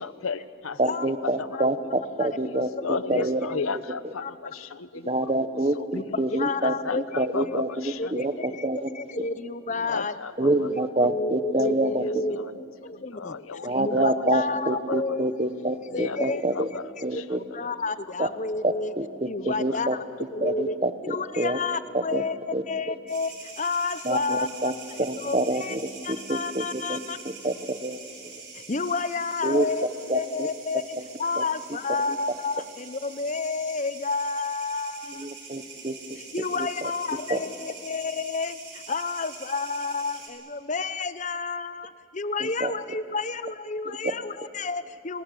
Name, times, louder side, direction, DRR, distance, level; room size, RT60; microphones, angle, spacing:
voice 1, 0.0-0.8 2.8-5.0 5.8-5.9 6.6-7.9 9.9-10.3 12.3-12.4 13.1-13.7 15.9-16.8, left 4 dB, 85° left, 15 dB, 0.9 m, -33 dB
voice 2, 0.8-3.5 3.7-4.1 4.9-8.9 10.4-12.0 13.6-16.7 17.0-17.4 18.2-18.3 18.6-20.0 20.4-21.6 21.9-22.2 22.5-22.6 24.0-24.7 25.0-27.0 27.4-28.0 28.2-28.3 29.4-30.5 31.4-31.5 31.9-32.0 35.1-35.9 36.5-36.9 37.3-37.4 42.4-42.7 43.9-44.0, right 1 dB, 30° right, 10 dB, 1.2 m, -27 dB
voice 3, 2.2-2.6 2.9-3.2 4.2-4.3 5.9-7.3 8.0-10.2 10.4-12.4 12.8-15.2 15.9-16.4 17.1-18.9 19.2-20.0 20.3-20.8 21.0-24.5 24.9-25.8 26.0-27.2 28.5-29.9 30.1-30.8 31.2-35.3 36.2-45.2, left 4 dB, 35° left, 14 dB, 0.8 m, -30 dB
sound 1, 23.1-40.3, right 5 dB, 55° right, 5.6 m, -44 dB
29.0 x 20.0 x 8.3 m, 2.5 s
head